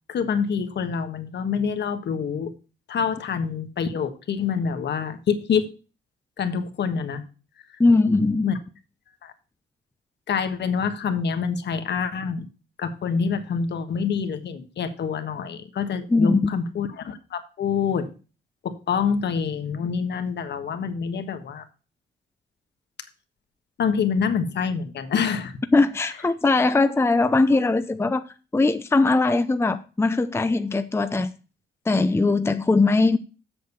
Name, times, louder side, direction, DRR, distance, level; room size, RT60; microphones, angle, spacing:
voice 1, 0.1-2.5 2.9-5.7 6.4-7.2 8.4-8.6 9.2-9.3 10.3-12.5 12.8-18.1 18.6-21.6 23.8-25.6, left 6 dB, 60° left, 1.5 m, -26 dB
voice 2, 7.8-8.5 16.1-16.5 25.7-28.2 28.5-31.3 31.9-33.2, left 3 dB, 15° left, 0.6 m, -20 dB
7.8 x 6.4 x 6.9 m
cardioid pair, 90°, 20 cm